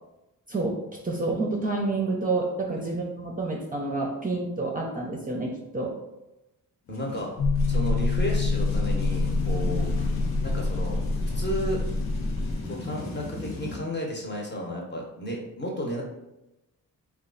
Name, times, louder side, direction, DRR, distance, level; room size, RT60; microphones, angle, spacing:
voice 1, 1.0-5.9 9.7-9.8, right 3 dB, 25° right, -1 dB, 0.6 m, -29 dB
sound 1, 6.9-13.8, left 2 dB, 75° left, 0.8 m, -37 dB
voice 2, 6.9-7.3 7.7-9.9 10.4-11.0 11.3-11.8 12.7-16.0, equal, 30° left, -1 dB, 0.9 m, -33 dB
sound 2, 7.4-12.5, left 3 dB, 60° left, 1.2 m, -26 dB
3.1 x 2.4 x 3.8 m, 0.93 s
cardioid pair, 85°, 36 cm